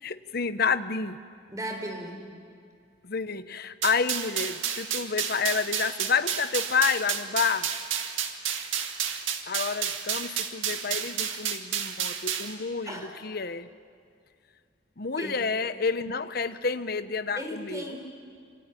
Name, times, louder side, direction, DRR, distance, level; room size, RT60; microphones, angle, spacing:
voice 1, 0.0-1.2 3.0-7.7 9.5-13.7 15.0-18.0, left 5 dB, 50° left, 12 dB, 0.9 m, -29 dB
voice 2, 1.5-2.2 12.9-13.1 15.2-15.4 17.4-18.1, right 1 dB, 15° right, 3 dB, 3.7 m, -36 dB
sound 1, 3.8-12.5, right 8 dB, 85° right, 2.0 m, -31 dB
27.0 x 23.5 x 9.2 m, 2.2 s
head